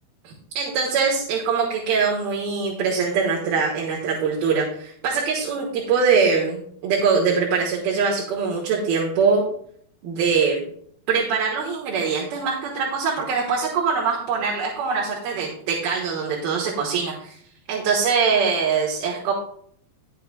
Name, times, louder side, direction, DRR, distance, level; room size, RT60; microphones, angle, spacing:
voice 1, 0.2-9.4 10.0-10.6 11.1-17.4 17.7-19.3, right 5 dB, 90° right, -2 dB, 3.2 m, -23 dB
19.0 x 6.7 x 2.2 m, 0.63 s
omnidirectional pair, 4.2 m